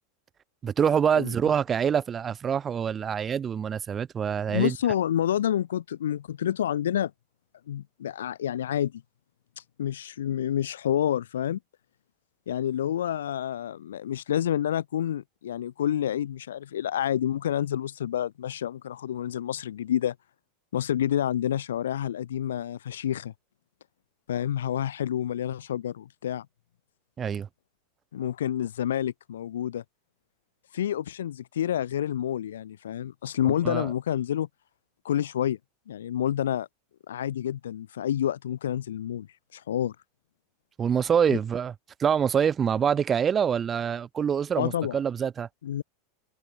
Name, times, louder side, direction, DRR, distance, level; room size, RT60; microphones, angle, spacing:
voice 1, 0.6-4.8 27.2-27.5 33.4-33.9 40.8-41.7 42.0-45.5, right 7 dB, 25° right, 1.1 m, -25 dB
voice 2, 4.5-7.1 7.7-9.0 9.8-11.6 12.5-20.2 20.7-23.3 24.3-26.5 28.1-29.8 30.7-34.5 35.0-35.6 35.9-36.7 37.1-39.3 39.5-40.0 41.3-41.4 44.6-45.0 45.6-45.8, left 10 dB, 75° left, 0.7 m, -28 dB
hypercardioid pair, 90°, 0 cm